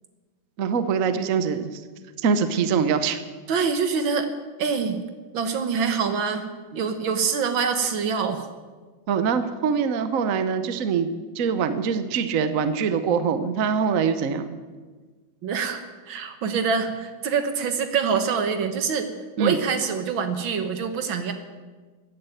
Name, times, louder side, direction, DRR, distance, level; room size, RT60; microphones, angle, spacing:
voice 1, 0.6-1.8 2.2-3.2 9.1-11.1 11.3-14.6 19.4-19.6, right 6 dB, 55° right, 10 dB, 1.1 m, -23 dB
voice 2, 3.5-4.3 4.6-5.0 5.3-6.5 6.7-8.5 15.4-19.1 19.4-21.3, right 6 dB, 75° right, 8 dB, 2.0 m, -25 dB
15.0 x 9.9 x 9.1 m, 1.4 s
omnidirectional pair, 2.2 m